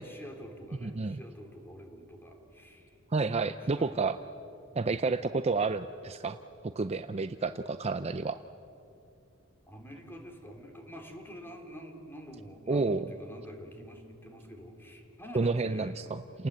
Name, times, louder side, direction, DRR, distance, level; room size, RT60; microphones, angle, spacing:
voice 1, 0.0-2.9 3.4-4.0 4.8-5.1 9.7-15.9, equal, 10° left, 3 dB, 3.5 m, -47 dB
voice 2, 0.8-1.2 3.1-4.2 4.8-6.4 6.8-8.4 12.7-13.1 15.3-16.5, right 3 dB, 30° right, 10 dB, 0.5 m, -30 dB
29.5 x 19.5 x 8.2 m, 2.8 s
head